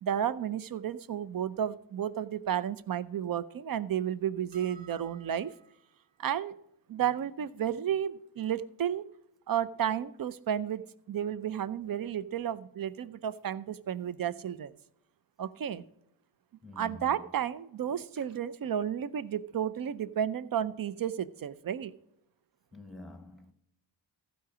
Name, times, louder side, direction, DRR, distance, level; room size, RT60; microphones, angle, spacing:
voice 1, 0.0-5.5 6.2-6.6 6.9-9.1 9.5-14.7 15.4-15.8 16.8-21.9, right 9 dB, 50° right, 0.6 m, -32 dB
sound 1, 4.5-5.9, right 6 dB, 65° right, 2.5 m, -56 dB
voice 2, 16.6-17.2 22.7-23.5, left 2 dB, ahead, 1.1 m, -47 dB
15.0 x 5.1 x 4.9 m
wide cardioid pair, 110°, 45 cm